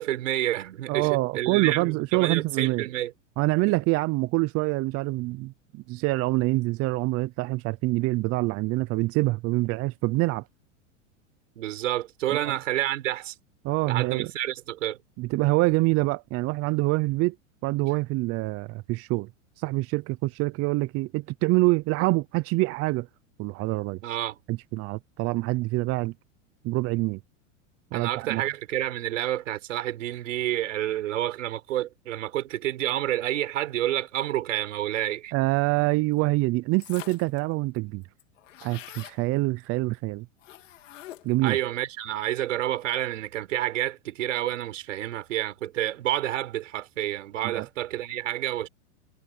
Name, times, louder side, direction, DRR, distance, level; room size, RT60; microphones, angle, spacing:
voice 1, 0.0-3.1 11.6-13.3 13.9-15.0 24.0-24.4 27.9-35.3 41.4-48.7, right 13 dB, 80° right, 4.6 m, -29 dB
voice 2, 0.9-2.9 3.4-10.5 12.3-12.6 13.6-14.3 15.2-17.4 17.6-19.3 19.6-23.1 23.4-24.0 24.5-26.1 26.6-27.2 27.9-28.4 35.3-38.0 38.6-40.3 41.2-41.6 47.4-47.7, right 21 dB, 40° right, 0.7 m, -25 dB
sound 1, 36.8-37.4 37.8-37.9 38.0-39.2 40.4-41.4, left 13 dB, 80° left, 3.3 m, -45 dB
hypercardioid pair, 120°, 37 cm